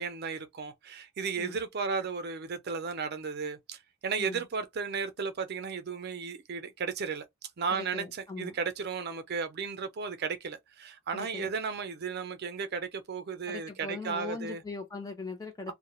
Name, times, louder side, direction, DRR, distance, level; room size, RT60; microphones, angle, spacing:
voice 1, 0.0-7.2 7.6-14.6 15.7-15.8, right 5 dB, 50° right, 0.5 m, -34 dB
voice 2, 7.7-8.6 11.1-11.5 13.5-15.7, left 3 dB, 15° left, 0.5 m, -40 dB
2.2 x 2.0 x 2.9 m
head